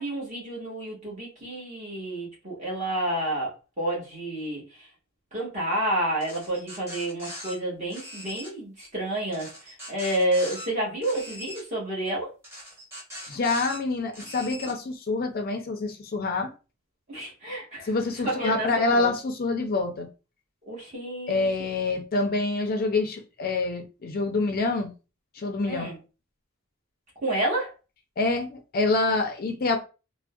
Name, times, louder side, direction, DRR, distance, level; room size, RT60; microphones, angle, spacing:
voice 1, 0.0-4.6 5.3-12.3 17.1-17.9 18.2-19.1 20.7-21.5 25.6-26.0 27.2-27.7, right 1 dB, 35° right, 1.2 m, -30 dB
sound 1, 6.2-7.5 7.9-8.5 9.3-10.7 11.0-11.6 12.4-13.8 14.1-14.7, left 1 dB, 10° right, 1.1 m, -40 dB
voice 2, 13.3-16.5 17.8-20.1 21.3-24.9 25.3-25.9 28.2-29.8, left 3 dB, 45° left, 0.5 m, -26 dB
3.5 x 2.1 x 2.3 m
head